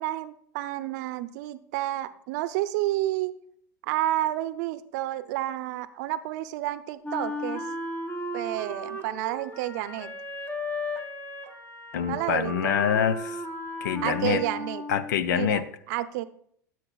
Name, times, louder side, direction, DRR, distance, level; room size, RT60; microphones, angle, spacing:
voice 1, 0.0-3.4 3.8-7.7 8.3-10.1 12.1-12.8 14.0-14.8 15.3-16.2, right 15 dB, 65° right, 0.6 m, -30 dB
Wind instrument woodwind instrument, 7.0-15.2, left 1 dB, 25° left, 1.6 m, -35 dB
voice 2, 11.9-13.4 13.8-14.4 14.9-15.7, left 9 dB, 75° left, 0.6 m, -26 dB
15.5 x 7.6 x 2.3 m
hypercardioid pair, 85°, 10 cm